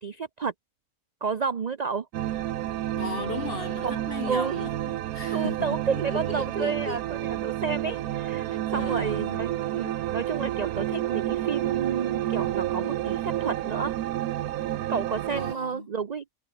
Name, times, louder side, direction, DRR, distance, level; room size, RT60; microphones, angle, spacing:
voice 1, 0.0-0.5 1.2-2.1 3.8-4.6 5.3-8.4 8.7-13.9 14.9-16.2, right 5 dB, 45° right, 0.5 m, -31 dB
sound 1, 2.1-15.5, right 13 dB, 80° right, 1.2 m, -30 dB
voice 2, 3.0-7.0 8.4-9.4 15.4-15.9, left 3 dB, 40° left, 2.6 m, -37 dB
omnidirectional pair, 1.6 m